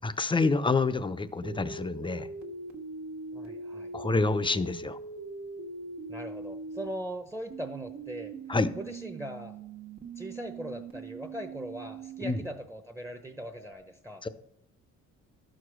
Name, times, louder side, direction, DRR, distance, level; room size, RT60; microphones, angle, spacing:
voice 1, 0.0-2.3 3.9-5.0 8.5-8.7 12.2-12.4 14.2-14.3, left 3 dB, 15° left, 13 dB, 0.6 m, -27 dB
sound 1, 1.4-6.9 7.5-12.5 13.4-13.7, right 4 dB, 65° right, 1.5 m, -42 dB
voice 2, 3.3-3.9 6.1-8.3 8.8-9.6 10.2-14.2, equal, 10° right, 7 dB, 0.9 m, -40 dB
12.0 x 4.9 x 6.2 m, 0.77 s
cardioid pair, 90°, 30 cm